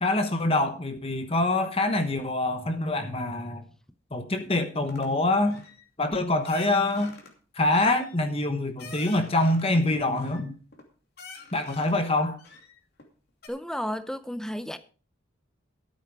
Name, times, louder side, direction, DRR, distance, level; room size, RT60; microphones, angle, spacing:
voice 1, 0.0-3.6 4.1-5.6 6.0-7.1 7.5-10.6 11.5-12.4, left 2 dB, 25° left, 1.1 m, -25 dB
sound 1, 4.8-5.1 5.5-5.8 6.4-7.3 7.7-9.7 10.2-10.8 11.2-12.0 12.4-13.1 13.4-13.5, left 4 dB, 50° left, 2.6 m, -47 dB
voice 2, 13.5-14.8, equal, 5° left, 0.5 m, -32 dB
13.5 x 8.3 x 4.8 m
head